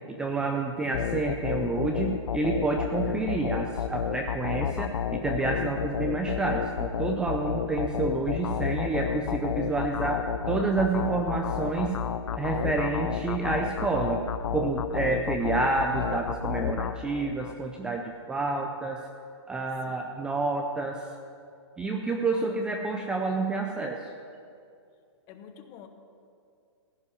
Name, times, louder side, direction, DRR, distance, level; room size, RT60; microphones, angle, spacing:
voice 1, 0.2-11.9 12.4-14.2 14.5-19.0 19.5-21.0 21.8-24.1, right 3 dB, 5° right, 2 dB, 0.4 m, -29 dB
sound 1, 0.9-17.5, left 8 dB, 90° left, 0.6 m, -31 dB
voice 2, 19.8-20.2 22.2-22.7 25.3-25.9, left 8 dB, 25° left, 7 dB, 0.9 m, -49 dB
15.5 x 5.5 x 9.6 m, 2.4 s
hypercardioid pair, 155°, 15 cm